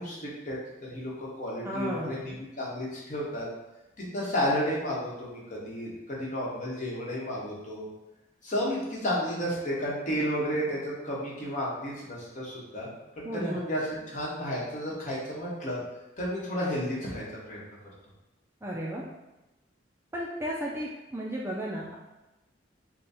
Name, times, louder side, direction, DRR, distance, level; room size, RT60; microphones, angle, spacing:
voice 1, 0.0-3.5 4.0-7.9 8.4-12.9 13.2-15.8 16.2-17.6, equal, 40° left, -5 dB, 1.0 m, -32 dB
voice 2, 1.6-2.2 13.2-13.6 18.6-19.0 20.1-22.0, equal, 15° right, -4 dB, 0.3 m, -34 dB
3.5 x 2.2 x 4.1 m, 1.0 s
head